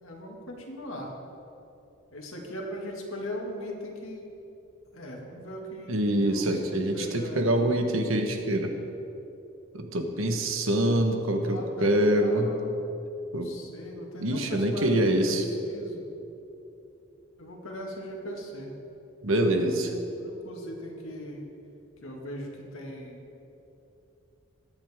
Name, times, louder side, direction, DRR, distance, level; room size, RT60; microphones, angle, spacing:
voice 1, 0.0-1.2 2.1-4.3 4.9-7.9 10.9-11.1 11.5-12.8 13.2-16.1 17.4-18.7 19.4-21.5 22.0-23.2, equal, 80° left, 0 dB, 2.1 m, -39 dB
voice 2, 5.9-8.7 9.7-12.5 13.3-13.5 14.2-15.4 19.2-19.9, right 1 dB, 75° right, 4 dB, 1.3 m, -25 dB
21.5 x 9.1 x 3.6 m, 2.9 s
head